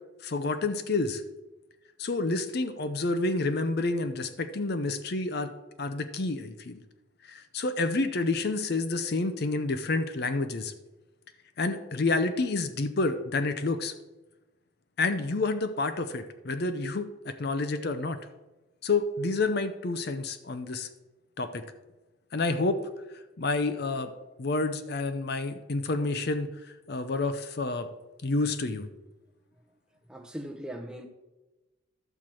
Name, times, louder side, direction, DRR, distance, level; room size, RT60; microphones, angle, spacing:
voice 1, 0.2-1.2 2.0-5.5 5.8-6.8 7.3-10.7 11.6-13.9 15.0-18.2 18.8-20.9 21.4-21.6 22.3-22.8 23.4-24.1 24.4-27.9 28.2-28.9, left 3 dB, 50° left, 0.6 m, -29 dB
voice 2, 30.1-31.1, right 1 dB, 5° right, 0.8 m, -39 dB
12.0 x 4.5 x 7.5 m
head